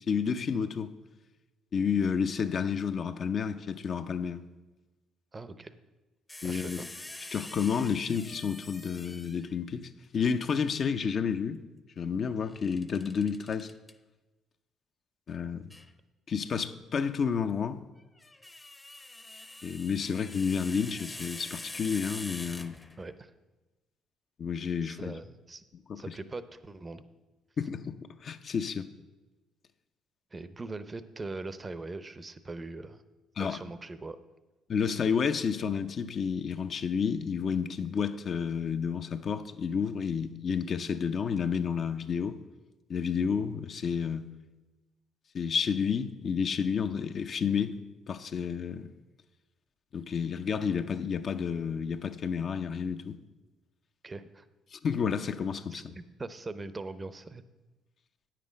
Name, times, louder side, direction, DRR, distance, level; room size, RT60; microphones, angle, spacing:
voice 1, 0.1-0.9 1.7-4.4 6.4-6.9 7.3-11.6 12.0-13.7 15.3-15.7 16.3-17.8 19.6-22.8 24.4-25.2 25.9-26.1 27.6-28.9 33.4-33.6 34.7-42.4 42.9-44.3 45.3-47.8 48.1-48.9 49.9-53.2 54.7-55.9, left 6 dB, 50° left, 0.6 m, -30 dB
voice 2, 5.3-5.7 6.4-6.8 23.0-23.3 24.8-25.6 26.0-27.0 30.3-33.0 33.4-34.2 54.0-54.5 55.7-57.4, right 3 dB, 30° right, 0.7 m, -41 dB
sound 1, 6.3-9.6 12.5-13.9 15.7-15.9 18.0-23.2, left 2 dB, 15° left, 0.7 m, -45 dB
9.5 x 7.6 x 5.1 m
hypercardioid pair, 60°, 0 cm